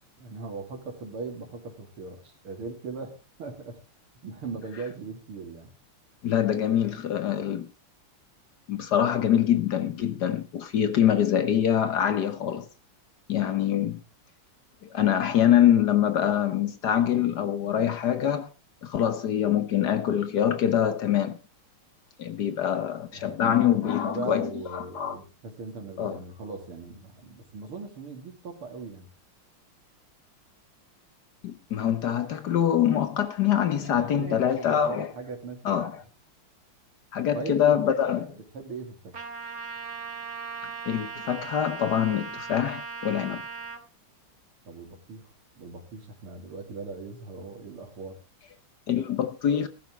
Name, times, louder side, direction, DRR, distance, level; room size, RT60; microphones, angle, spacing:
voice 1, 0.2-3.8 4.2-5.7 23.1-23.7 24.0-29.1 33.8-36.0 37.3-39.2 44.6-45.3 45.6-48.2, right 4 dB, 85° right, 3.5 m, -39 dB
voice 2, 6.2-7.7 8.7-12.7 13.3-14.0 14.8-18.5 18.8-21.4 22.2-25.2 26.0-26.2 31.4-35.1 35.6-36.0 37.1-38.2 40.8-43.4 48.9-49.7, left 10 dB, 60° left, 1.4 m, -24 dB
Trumpet, 39.1-43.8, right 5 dB, 40° right, 1.7 m, -38 dB
15.0 x 13.5 x 3.2 m
omnidirectional pair, 2.3 m